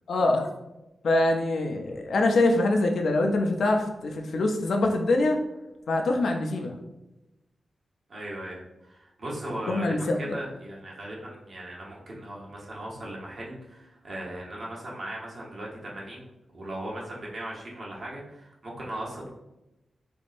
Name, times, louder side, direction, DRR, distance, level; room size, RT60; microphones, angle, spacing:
voice 1, 0.1-0.5 1.0-5.4 5.9-6.8 9.7-10.4, left 2 dB, 70° left, 3 dB, 0.5 m, -24 dB
voice 2, 8.1-19.3, right 1 dB, 45° right, -3 dB, 1.0 m, -38 dB
3.9 x 3.5 x 2.5 m, 0.93 s
wide cardioid pair, 165°, 0 cm